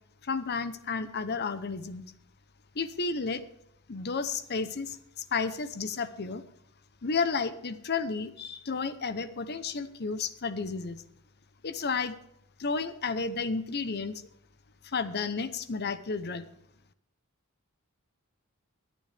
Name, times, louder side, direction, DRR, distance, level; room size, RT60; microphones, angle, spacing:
voice 1, 0.2-2.0 2.7-3.4 3.9-6.4 7.0-11.0 11.6-12.1 12.6-14.3 14.8-16.5, left 4 dB, 50° left, 13 dB, 0.8 m, -32 dB
24.5 x 9.4 x 3.4 m, 0.77 s
head